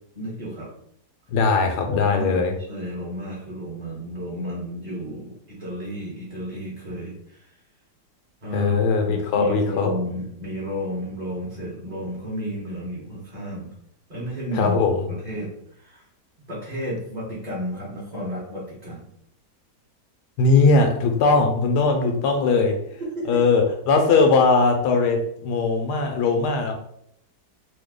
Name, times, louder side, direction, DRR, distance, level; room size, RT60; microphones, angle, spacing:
voice 1, 0.1-0.7 1.9-7.5 8.4-8.8 9.0-13.7 14.1-14.8 15.1-16.0 16.5-19.0 23.0-23.4, equal, 30° right, -7 dB, 0.9 m, -32 dB
voice 2, 1.3-2.5 8.5-9.9 14.5-15.1 20.4-22.8 23.3-26.8, left 4 dB, 75° left, 4 dB, 1.2 m, -20 dB
3.2 x 2.2 x 3.5 m, 0.69 s
omnidirectional pair, 1.8 m